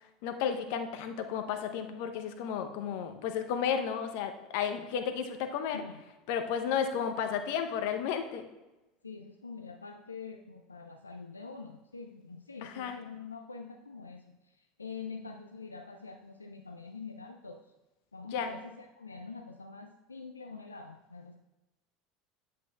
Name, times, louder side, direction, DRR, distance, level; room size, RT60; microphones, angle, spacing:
voice 1, 0.2-5.8 6.3-8.4 12.6-13.0 18.3-18.5, left 7 dB, 60° left, 7 dB, 0.7 m, -33 dB
voice 2, 5.7-6.0 9.0-17.7 18.1-21.4, left 4 dB, 90° left, 4 dB, 0.3 m, -45 dB
9.3 x 8.3 x 2.3 m, 1.0 s
figure-of-eight pair, 75°, 0 cm